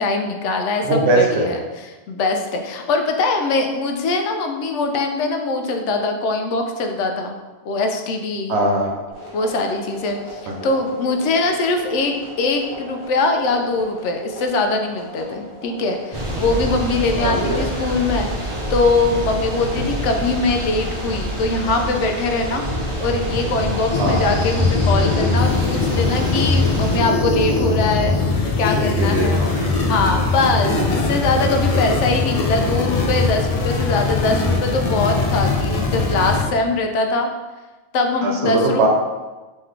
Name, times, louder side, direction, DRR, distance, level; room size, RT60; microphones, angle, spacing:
voice 1, 0.0-7.3 7.7-8.6 9.3-22.6 23.0-28.1 28.6-29.5 29.9-37.3 37.9-38.8, left 3 dB, 90° left, 4 dB, 0.9 m, -22 dB
voice 2, 0.8-1.5 8.5-8.9 10.5-10.6 17.2-17.6 24.0-24.4 28.9-29.5 30.7-30.9 38.2-38.9, right 2 dB, 70° right, 0 dB, 1.0 m, -20 dB
sound 1, 9.1-25.6, right 1 dB, 30° left, 1.0 m, -37 dB
Thunder / Rain, 16.1-27.0, equal, 30° right, 0.7 m, -27 dB
sound 2, 23.9-36.4, left 3 dB, 55° left, 0.4 m, -20 dB
3.9 x 3.1 x 3.2 m, 1.2 s
omnidirectional pair, 1.2 m